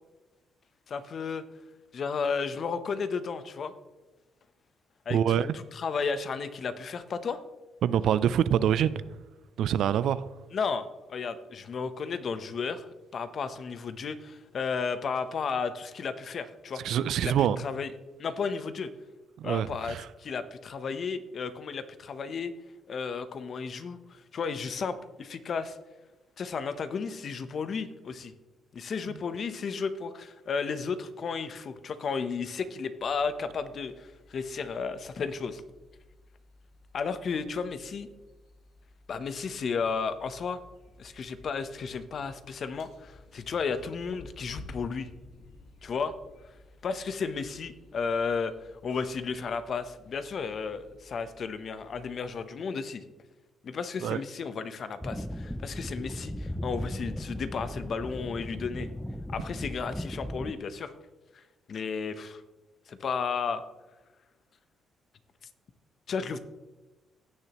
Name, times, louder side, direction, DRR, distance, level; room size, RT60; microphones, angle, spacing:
voice 1, 0.9-1.4 1.9-3.7 5.1-7.4 10.5-12.8 13.1-16.8 17.2-17.9 18.2-18.9 19.4-22.5 22.9-25.8 26.4-28.3 28.7-35.6 36.9-38.1 39.1-40.6 41.0-45.1 45.8-46.1 46.8-48.5 48.8-53.0 53.6-58.9 59.3-60.9 61.3-61.4 61.7-62.4 62.9-63.6 66.1-66.4, left 5 dB, 55° left, 0.8 m, -33 dB
voice 2, 5.1-5.5 7.8-9.1 9.6-10.2 16.8-17.6 19.4-20.1 54.0-54.2, right 9 dB, 75° right, 0.4 m, -25 dB
sound 1, 33.0-52.3, left 2 dB, 85° left, 1.7 m, -54 dB
sound 2, 55.0-60.5, equal, 5° left, 0.4 m, -37 dB
16.5 x 6.7 x 3.0 m
cardioid pair, 90°, 0 cm